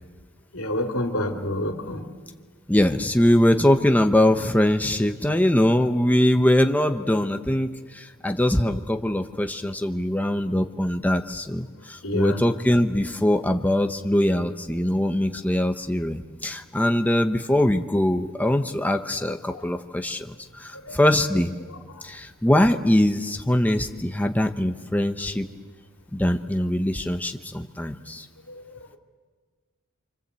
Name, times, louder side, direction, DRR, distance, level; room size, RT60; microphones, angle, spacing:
voice 1, 0.5-2.0 12.0-12.4 20.9-21.0, left 1 dB, 75° left, 3 dB, 2.7 m, -27 dB
voice 2, 2.7-20.3 20.6-21.5 22.0-25.5 26.1-28.3, left 1 dB, 5° left, 5 dB, 0.8 m, -22 dB
28.5 x 25.5 x 8.1 m, 1.5 s
head